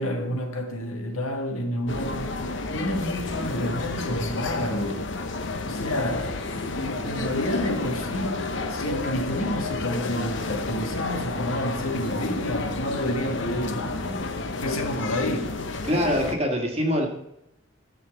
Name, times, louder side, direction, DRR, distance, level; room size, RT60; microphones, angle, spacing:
voice 1, 0.0-2.4 2.7-5.0 5.6-14.3 14.6-15.6, left 1 dB, 85° left, 1.8 m, -29 dB
sound 1, 1.9-16.4, left 3 dB, 60° left, 0.9 m, -31 dB
voice 2, 15.8-17.1, equal, 30° right, 1.8 m, -24 dB
13.5 x 4.7 x 7.1 m
head